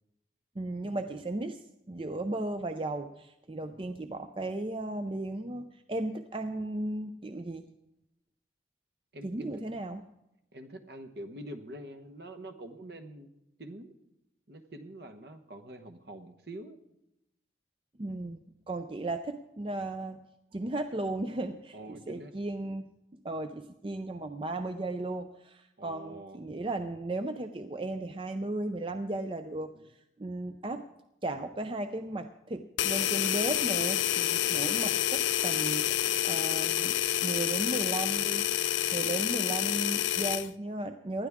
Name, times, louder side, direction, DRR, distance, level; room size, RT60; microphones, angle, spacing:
voice 1, 0.6-7.7 9.2-10.0 18.0-18.4 18.7-20.2 20.5-22.9 23.2-29.7 30.2-30.8 31.2-38.5 38.9-41.3, right 2 dB, 30° right, 8 dB, 0.5 m, -35 dB
voice 2, 3.6-4.0 9.1-9.5 10.5-13.3 13.6-13.9 14.5-16.8 21.7-22.3 25.8-26.4 29.7-29.9 34.4-34.9 39.0-39.4, right 1 dB, 60° right, 8 dB, 1.1 m, -46 dB
sound 1, 32.8-40.5, left 12 dB, 85° left, 0.5 m, -28 dB
19.5 x 12.5 x 3.6 m, 0.86 s
head